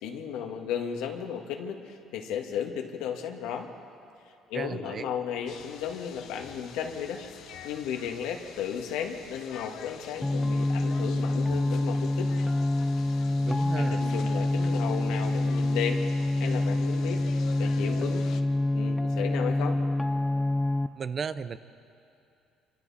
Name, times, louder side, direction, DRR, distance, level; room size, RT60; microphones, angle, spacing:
voice 1, 0.0-3.7 4.5-7.2 7.6-12.3 13.7-16.0 16.4-18.3 18.7-19.8, left 8 dB, 85° left, 3 dB, 2.0 m, -34 dB
voice 2, 4.5-5.1 13.3-14.0 21.0-21.6, right 6 dB, 40° right, 13 dB, 0.7 m, -34 dB
sound 1, 5.5-18.4, left 8 dB, 70° left, 1.0 m, -47 dB
sound 2, 10.2-20.9, left 2 dB, 10° left, 0.6 m, -26 dB
28.0 x 25.0 x 4.3 m, 2.6 s
cardioid pair, 110°, 0 cm